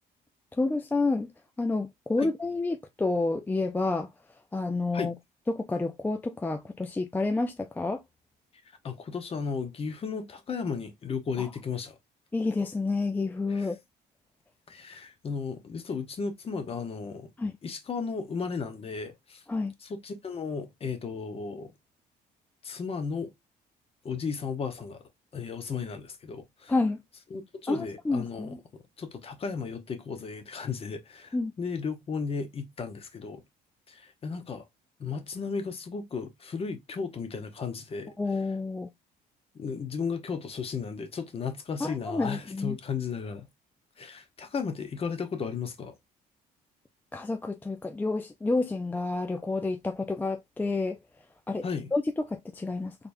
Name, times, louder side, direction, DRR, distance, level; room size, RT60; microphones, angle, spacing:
voice 1, 0.5-1.3 1.6-4.1 4.5-5.1 5.5-8.0 11.4-11.5 12.3-13.8 17.4-17.5 19.5-19.7 26.7-27.0 27.7-28.6 31.3-31.5 38.2-38.9 41.8-42.8 47.1-51.0 51.5-51.6 51.9-53.0, left 3 dB, 10° left, 0.4 m, -29 dB
voice 2, 8.8-12.0 13.5-13.7 14.7-17.3 17.6-19.4 19.8-21.7 22.6-23.3 24.0-25.0 25.3-26.7 27.3-28.6 29.0-33.4 33.9-34.6 35.0-38.1 39.5-43.5 44.0-46.0 51.6-51.9, left 5 dB, 35° left, 0.9 m, -34 dB
3.9 x 3.4 x 2.6 m
cardioid pair, 110°, 17 cm